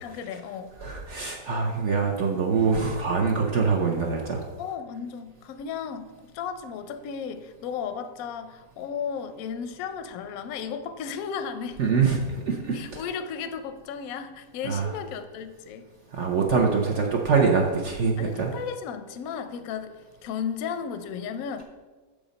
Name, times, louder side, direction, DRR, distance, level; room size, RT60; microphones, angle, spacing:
voice 1, 0.0-0.7 4.6-11.8 12.7-15.8 18.2-19.9 20.2-21.6, left 7 dB, 70° left, 9 dB, 0.9 m, -34 dB
voice 2, 0.8-4.4 11.8-13.0 14.6-14.9 16.1-18.5, right 5 dB, 55° right, 1 dB, 0.8 m, -24 dB
6.8 x 5.0 x 5.1 m, 1.3 s
omnidirectional pair, 1.9 m